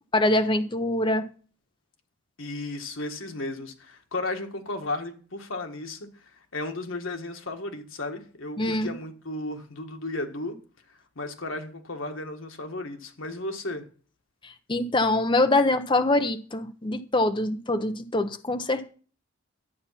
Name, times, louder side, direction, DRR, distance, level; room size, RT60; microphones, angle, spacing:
voice 1, 0.1-1.2 8.6-8.9 14.7-18.9, left 2 dB, 25° left, 0.8 m, -24 dB
voice 2, 2.4-6.2 6.5-10.6 11.2-13.8, left 2 dB, 85° left, 1.7 m, -34 dB
12.0 x 8.5 x 5.8 m
head